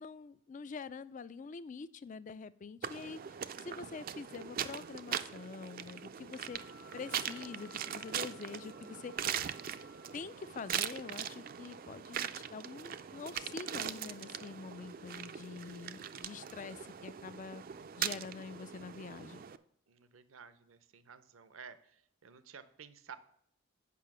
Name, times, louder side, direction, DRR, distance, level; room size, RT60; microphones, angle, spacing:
voice 1, 0.0-6.6 6.9-9.4 10.1-17.6 18.0-19.4, left 5 dB, 40° left, 17 dB, 0.3 m, -46 dB
sound 1, 2.8-19.6, right 9 dB, 45° right, 0.4 m, -41 dB
Wind instrument woodwind instrument, 6.4-10.2, left 10 dB, 70° left, 1.1 m, -60 dB
voice 2, 19.9-23.2, right 6 dB, 80° right, 12 dB, 0.7 m, -54 dB
8.4 x 5.6 x 5.9 m, 0.69 s
head